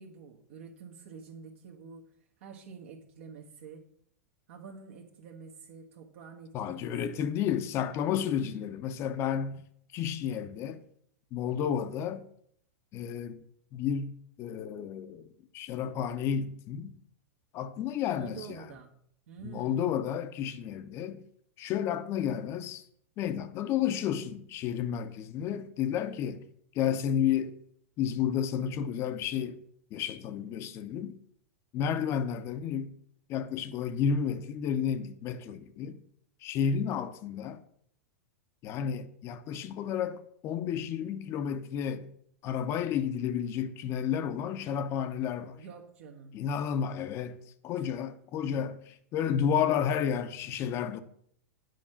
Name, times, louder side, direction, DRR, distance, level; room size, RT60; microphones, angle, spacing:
voice 1, 0.0-2.1 2.4-3.9 4.5-7.3 18.1-18.9 19.3-19.8 45.6-46.4 47.7-47.9, right 6 dB, 55° right, 1.3 m, -48 dB
voice 2, 6.5-9.6 9.9-10.8 11.3-12.2 12.9-13.4 13.7-15.3 15.5-16.9 17.5-18.6 19.4-21.2 21.6-22.8 23.2-26.4 26.7-27.5 28.0-29.6 29.9-31.2 31.7-32.9 33.3-36.0 36.4-37.6 38.6-42.1 42.4-45.6 46.3-51.0, left 8 dB, 35° left, 0.8 m, -31 dB
9.3 x 5.3 x 7.1 m
figure-of-eight pair, 95°, 8 cm